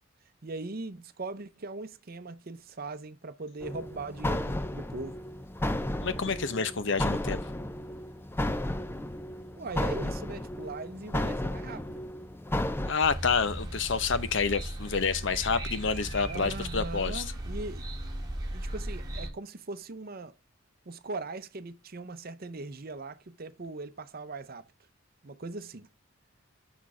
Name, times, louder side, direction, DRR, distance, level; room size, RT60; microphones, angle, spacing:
voice 1, 0.4-5.2 9.6-12.0 16.3-17.9 18.5-20.3 20.9-24.7 25.2-25.9, right 3 dB, 45° right, 0.7 m, -40 dB
sound 1, 3.6-12.9, left 1 dB, 10° left, 0.5 m, -33 dB
voice 2, 6.0-7.4 12.9-17.2, left 5 dB, 65° left, 0.7 m, -28 dB
sound 2, 13.0-19.3, right 1 dB, 20° right, 1.8 m, -37 dB
6.3 x 6.0 x 4.8 m
head